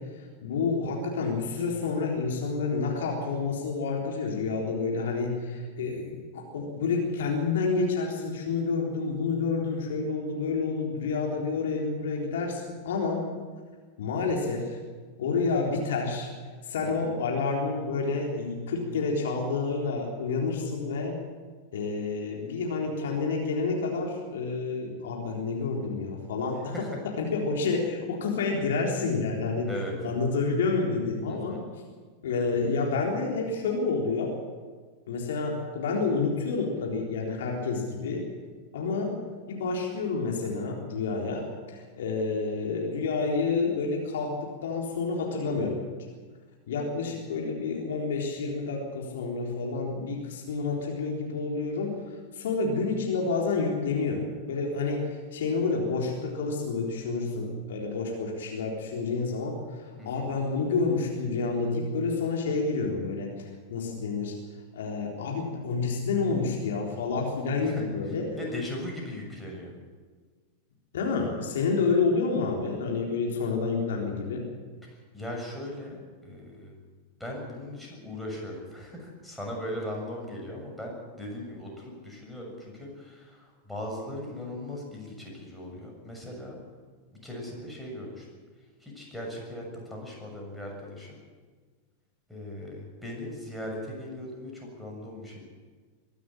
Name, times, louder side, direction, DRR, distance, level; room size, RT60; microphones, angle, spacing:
voice 1, 0.0-13.3 14.0-14.8 15.2-16.3 16.6-21.2 21.7-26.9 27.2-29.7 30.0-31.6 32.2-34.3 35.1-38.2 38.7-39.2 39.5-45.9 46.7-63.4 63.7-64.4 64.7-68.3 70.9-74.4, left 4 dB, 60° left, 0 dB, 3.8 m, -29 dB
voice 2, 31.3-31.6 60.0-60.3 67.6-67.8 68.4-69.7 74.9-76.7 77.2-86.6 87.2-88.3 88.8-91.2 92.3-95.5, left 1 dB, ahead, -1 dB, 6.7 m, -38 dB
23.0 x 12.5 x 10.0 m, 1.5 s
figure-of-eight pair, 90°, 0 cm